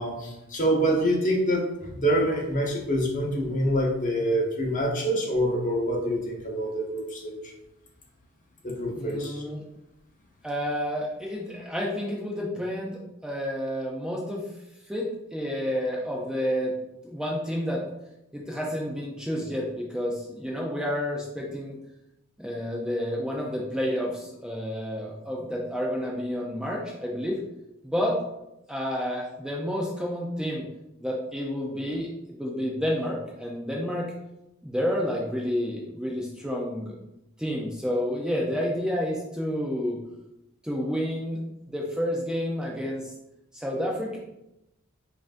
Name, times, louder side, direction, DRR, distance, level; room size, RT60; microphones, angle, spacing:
voice 1, 0.0-7.3 8.6-9.4, equal, 40° left, -1 dB, 0.8 m, -26 dB
voice 2, 9.0-9.6 10.4-14.4 14.9-16.7 17.0-17.8 18.3-21.8 22.4-27.4 27.8-28.2 28.7-30.7 31.0-34.1 34.6-36.9 37.4-40.0 40.6-41.4 41.7-43.1 43.5-44.2, equal, 5° right, -3 dB, 0.4 m, -30 dB
5.6 x 2.6 x 2.5 m, 0.89 s
head